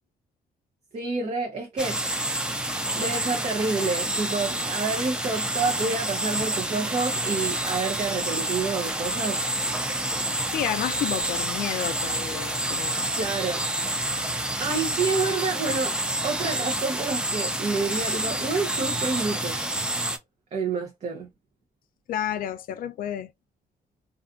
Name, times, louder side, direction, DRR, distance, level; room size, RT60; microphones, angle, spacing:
voice 1, 0.9-2.0 2.9-9.4 13.2-13.7 14.6-16.0 16.2-19.6 20.5-21.3, right 4 dB, 45° right, 0.7 m, -28 dB
sound 1, 1.8-20.2, right 1 dB, 5° right, 0.4 m, -28 dB
voice 2, 10.5-13.1 22.1-23.3, left 10 dB, 65° left, 0.4 m, -30 dB
2.6 x 2.4 x 2.4 m
cardioid pair, 145°, 16 cm